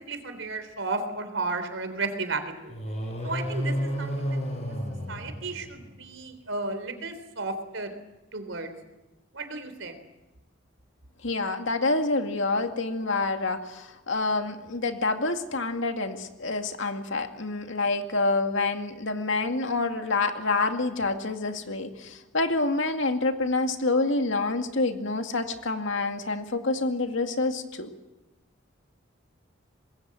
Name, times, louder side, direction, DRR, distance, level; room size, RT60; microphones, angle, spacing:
voice 1, 0.1-2.8 3.2-4.4 5.1-8.0 8.3-8.7 9.3-10.0, right 3 dB, 70° right, 9 dB, 3.6 m, -33 dB
sound 1, 2.7-6.0, equal, 30° left, 4.8 m, -31 dB
voice 2, 11.2-27.9, left 3 dB, 70° left, 5 dB, 2.3 m, -27 dB
25.0 x 21.0 x 7.8 m, 1.0 s
head